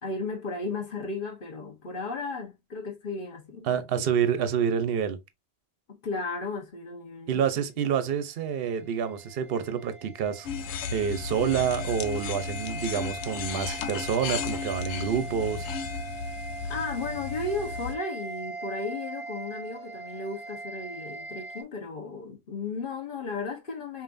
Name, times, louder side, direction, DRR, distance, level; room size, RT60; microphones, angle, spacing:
voice 1, 0.0-4.0 5.9-7.6 16.7-24.0, left 3 dB, 45° left, 1.2 m, -35 dB
voice 2, 3.6-5.2 7.3-10.5 10.9-15.7, right 8 dB, 55° right, 0.8 m, -28 dB
sound 1, 8.6-21.6, right 3 dB, 65° left, 1.5 m, -41 dB
sound 2, 10.5-18.0, left 5 dB, 90° left, 1.0 m, -34 dB
5.2 x 2.6 x 2.5 m
omnidirectional pair, 1.3 m